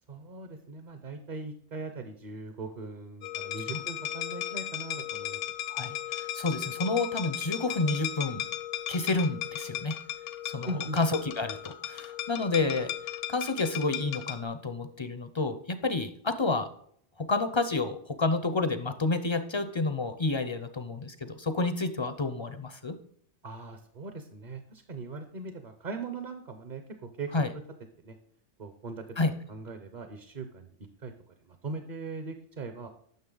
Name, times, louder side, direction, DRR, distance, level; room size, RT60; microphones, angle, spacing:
voice 1, 0.1-5.4 10.6-11.0 23.4-27.3 28.0-28.2 28.6-29.0 29.5-32.9, right 3 dB, 45° right, 7 dB, 0.8 m, -40 dB
sound 1, 3.2-14.4, left 12 dB, 80° left, 1.0 m, -36 dB
voice 2, 5.6-8.4 8.9-10.0 10.4-12.9 13.3-16.7 17.2-23.0 27.3-27.5 29.2-29.3, left 3 dB, 40° left, 10 dB, 0.4 m, -30 dB
9.4 x 6.5 x 3.8 m, 0.65 s
omnidirectional pair, 1.2 m